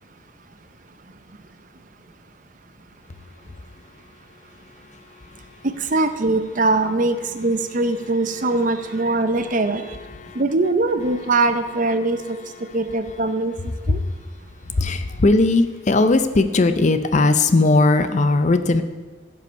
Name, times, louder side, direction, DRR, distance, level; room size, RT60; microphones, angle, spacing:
voice 1, 5.8-9.9 10.3-12.4 12.7-13.5 13.9-14.0, right 2 dB, 45° right, 9 dB, 0.7 m, -21 dB
voice 2, 14.8-18.8, left 2 dB, 40° left, 9 dB, 0.5 m, -18 dB
16.0 x 5.5 x 5.3 m, 1.3 s
head